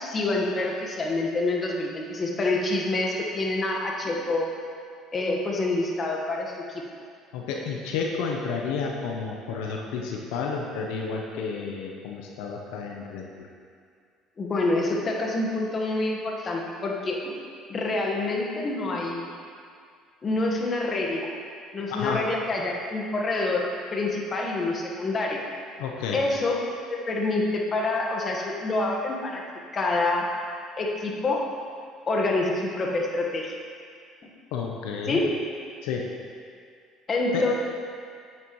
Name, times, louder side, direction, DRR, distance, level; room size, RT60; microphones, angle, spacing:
voice 1, 0.0-4.5 5.1-6.8 14.4-17.4 17.7-19.3 20.2-21.3 21.7-25.4 26.1-26.6 26.9-29.4 29.7-30.2 30.8-31.5 32.1-33.5 35.1-35.3 37.1-37.5, left 2 dB, 35° left, -1 dB, 1.4 m, -27 dB
voice 2, 7.3-13.5 21.9-22.3 25.8-26.2 34.5-35.2 35.8-36.1 37.3-37.5, left 5 dB, 85° left, 0 dB, 0.8 m, -31 dB
9.0 x 8.9 x 3.1 m, 2.2 s
supercardioid pair, 95°, 0 cm